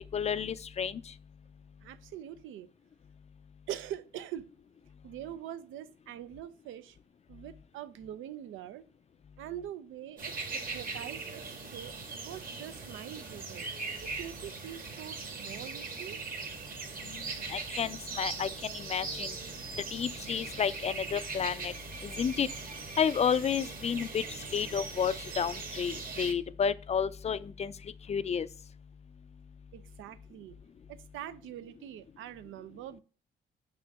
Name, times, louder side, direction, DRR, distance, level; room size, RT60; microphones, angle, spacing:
voice 1, 0.1-1.0 17.5-18.5 18.7-19.3 19.9-21.7 22.2-22.5 23.0-24.2 24.5-27.7 28.1-28.5, left 7 dB, 35° left, 0.4 m, -31 dB
voice 2, 1.8-2.7 3.7-4.5 5.0-7.0 7.3-8.8 9.4-11.4 11.7-13.7 14.0-16.2 29.7-30.6 30.9-33.0, right 11 dB, 85° right, 0.5 m, -43 dB
sound 1, 10.2-26.3, right 4 dB, 45° right, 1.5 m, -40 dB
6.1 x 5.0 x 3.4 m
cardioid pair, 90°, 20 cm